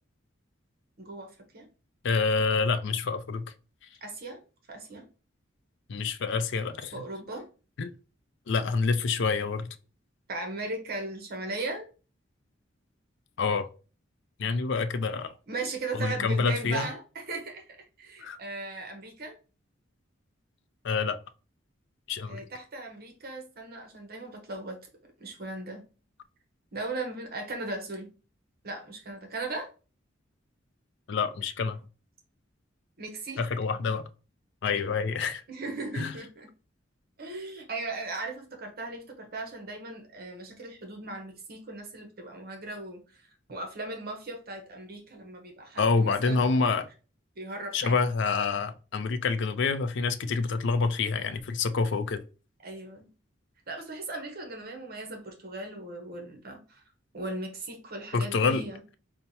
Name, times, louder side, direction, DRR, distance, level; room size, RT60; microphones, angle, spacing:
voice 1, 1.0-1.7 4.0-4.4 4.7-5.0 6.9-7.4 10.3-11.9 15.5-19.4 22.3-24.8 25.0-25.8 26.7-28.1 28.6-29.7 33.0-33.4 35.5-36.5 37.2-43.2 43.5-46.6 47.4-47.9 52.6-53.1 53.7-56.8 57.1-58.8, right 2 dB, 55° right, 0.9 m, -38 dB
voice 2, 2.0-3.4 5.9-6.9 7.8-7.9 8.5-9.7 13.4-13.7 14.4-15.3 15.9-16.9 18.2-18.4 20.8-21.2 22.1-22.4 31.1-31.8 33.4-34.0 34.6-35.4 35.9-36.2 45.8-46.9 47.7-52.2 58.1-58.6, left 4 dB, 65° left, 0.4 m, -27 dB
5.6 x 2.1 x 2.7 m
head